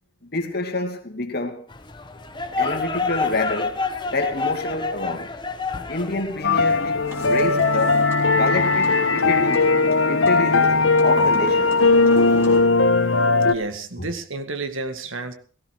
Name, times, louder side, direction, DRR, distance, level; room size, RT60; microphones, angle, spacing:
voice 1, 0.2-1.6 2.6-5.4 5.9-8.1 8.4-9.7 10.0-11.8 14.0-14.1, left 2 dB, 50° left, 2.7 m, -27 dB
sound 1, 1.7-7.5, left 3 dB, 20° left, 1.3 m, -29 dB
sound 2, 6.4-13.5, left 3 dB, 75° left, 1.4 m, -18 dB
sound 3, 7.0-12.6, equal, 10° right, 4.1 m, -35 dB
voice 2, 13.5-15.3, right 3 dB, 75° right, 2.1 m, -30 dB
18.0 x 16.0 x 5.0 m
head